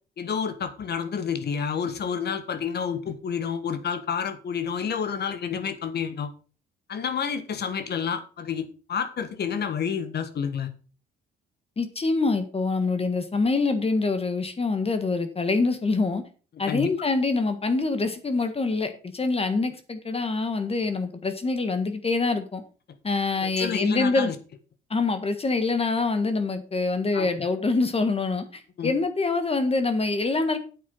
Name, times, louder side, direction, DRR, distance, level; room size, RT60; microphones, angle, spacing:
voice 1, 0.2-6.3 6.9-10.7 16.7-16.9 23.4-24.3 27.1-27.3 28.8-28.9, left 7 dB, 55° left, 9 dB, 1.6 m, -29 dB
voice 2, 11.8-16.2 16.6-22.6 23.0-24.3 24.9-30.6, left 3 dB, 30° left, 8 dB, 1.5 m, -25 dB
8.6 x 7.2 x 5.4 m, 0.37 s
cardioid pair, 90°, 20 cm